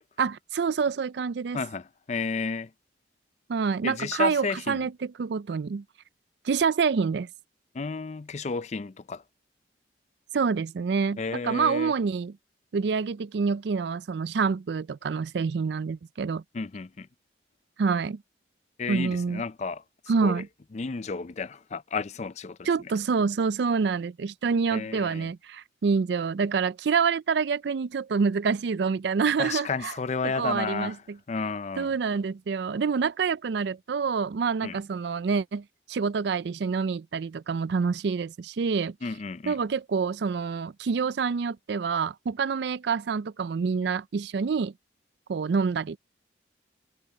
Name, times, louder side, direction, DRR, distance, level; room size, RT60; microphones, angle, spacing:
voice 1, 0.2-1.6 3.5-5.8 6.5-7.3 10.3-12.3 12.7-16.4 17.8-18.2 18.9-19.4 20.1-20.5 22.6-29.9 30.2-31.2 31.8-38.9 39.5-44.7 45.3-46.0, right 5 dB, 65° right, 0.4 m, -27 dB
voice 2, 1.5-2.7 3.8-4.9 7.7-9.2 11.2-11.9 16.5-17.1 18.8-19.8 20.2-20.4 20.7-22.7 24.7-25.3 29.4-31.0 31.3-31.9 34.6-34.8 39.0-39.6, left 4 dB, 40° left, 0.4 m, -32 dB
head